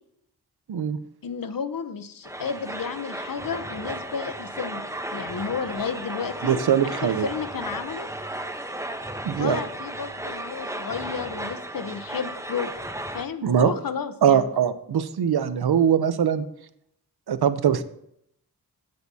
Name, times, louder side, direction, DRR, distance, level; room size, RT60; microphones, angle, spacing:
voice 1, 1.2-8.1 9.4-12.7 13.1-14.5, left 6 dB, 60° left, 10 dB, 0.9 m, -32 dB
sound 1, 2.2-13.3, right 1 dB, 10° right, 0.9 m, -34 dB
voice 2, 6.4-7.3 9.2-9.6 13.4-13.7 14.2-16.4 17.3-17.8, right 8 dB, 70° right, 12 dB, 0.8 m, -22 dB
16.0 x 6.6 x 2.8 m, 0.73 s
cardioid pair, 50°, 39 cm